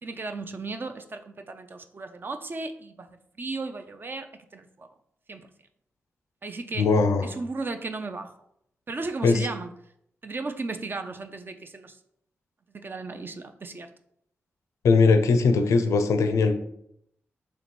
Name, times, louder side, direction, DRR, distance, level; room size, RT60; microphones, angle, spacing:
voice 1, 0.0-3.1 3.4-4.9 5.3-5.5 6.4-6.9 7.2-8.3 8.9-9.7 10.2-12.0 12.7-13.9, right 3 dB, 45° right, 8 dB, 0.4 m, -35 dB
voice 2, 6.8-7.3 9.2-9.4 14.8-16.5, left 4 dB, 85° left, 8 dB, 0.4 m, -20 dB
2.9 x 2.9 x 4.3 m, 0.72 s
cardioid pair, 50°, 5 cm